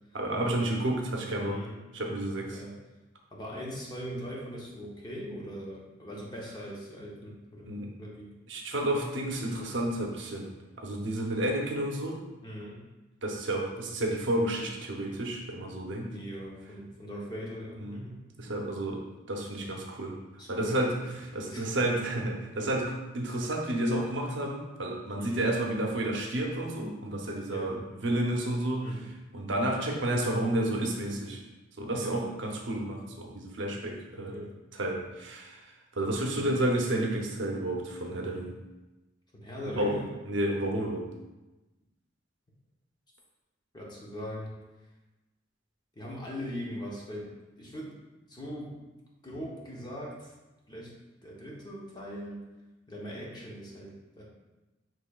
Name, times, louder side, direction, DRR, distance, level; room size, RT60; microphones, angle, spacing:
voice 1, 0.1-1.6 1.9-2.6 7.7-7.9 8.5-10.5 10.8-12.2 13.2-16.1 17.8-18.0 18.4-20.2 20.5-28.9 29.3-31.4 31.8-34.4 34.7-38.6 39.8-41.1, right 1 dB, 70° right, 0 dB, 0.7 m, -31 dB
voice 2, 1.4-1.8 2.5-2.8 3.3-8.3 12.4-12.8 16.1-18.1 20.4-20.8 21.2-21.9 25.2-25.5 27.5-27.8 28.8-29.1 31.9-32.3 34.1-34.5 36.3-36.7 39.3-40.1 43.7-44.6 46.0-47.9 48.3-48.8 49.2-50.3 50.7-50.9 51.2-52.4 52.9-54.2, equal, 20° left, -4 dB, 0.9 m, -40 dB
6.6 x 3.1 x 2.3 m, 1.1 s
head